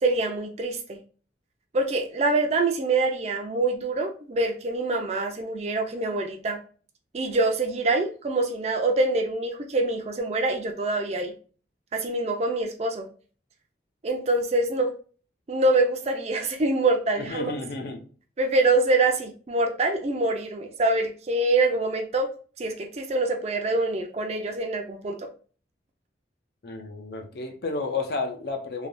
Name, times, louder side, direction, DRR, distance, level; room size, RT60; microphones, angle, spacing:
voice 1, 0.0-1.0 1.7-6.6 7.1-11.3 11.9-13.0 14.0-14.9 15.5-17.5 18.4-22.3 22.6-25.3, right 2 dB, 35° right, 0.4 m, -25 dB
voice 2, 17.2-18.1 26.6-28.9, left 3 dB, 55° left, 0.5 m, -32 dB
3.2 x 2.2 x 2.5 m
head